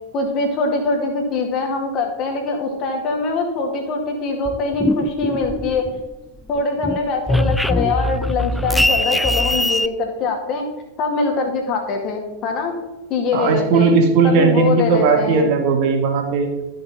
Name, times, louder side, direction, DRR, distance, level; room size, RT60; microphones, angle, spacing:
voice 1, 0.1-5.9 6.5-10.6 11.0-12.7 13.1-13.9 14.2-15.5, left 3 dB, 35° left, 3 dB, 2.2 m, -23 dB
sound 1, 4.4-6.1 6.5-9.9, left 1 dB, ahead, 0.4 m, -21 dB
voice 2, 13.3-16.5, right 4 dB, 45° right, 3 dB, 2.1 m, -17 dB
12.5 x 6.4 x 4.3 m, 1.1 s
figure-of-eight pair, 90°, 0 cm